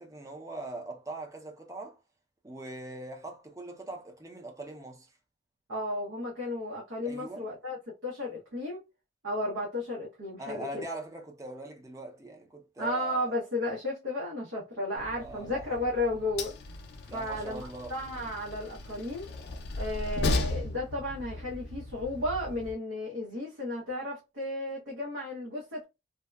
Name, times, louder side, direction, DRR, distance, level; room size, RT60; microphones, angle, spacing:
voice 1, 0.0-2.0 2.4-5.1 7.0-7.5 10.4-13.4 15.2-15.8 17.1-17.9, right 2 dB, 15° right, 0.4 m, -41 dB
voice 2, 5.7-8.8 9.2-10.8 12.8-16.5 17.1-19.3 19.7-25.8, left 1 dB, 90° right, 0.9 m, -34 dB
Train, 15.0-22.7, left 2 dB, 55° left, 0.4 m, -36 dB
2.7 x 2.1 x 2.2 m
head